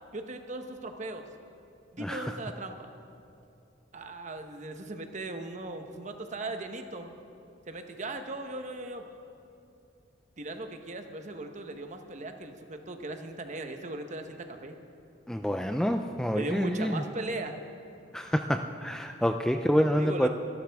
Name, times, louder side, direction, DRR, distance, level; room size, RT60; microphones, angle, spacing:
voice 1, 0.1-1.3 1.9-2.9 3.9-7.1 7.7-9.1 10.4-14.7 16.3-17.6 20.0-20.3, right 2 dB, 40° right, 6 dB, 1.0 m, -38 dB
voice 2, 15.3-17.0 18.1-20.3, equal, 5° left, 6 dB, 0.3 m, -27 dB
24.0 x 12.5 x 3.5 m, 2.6 s
head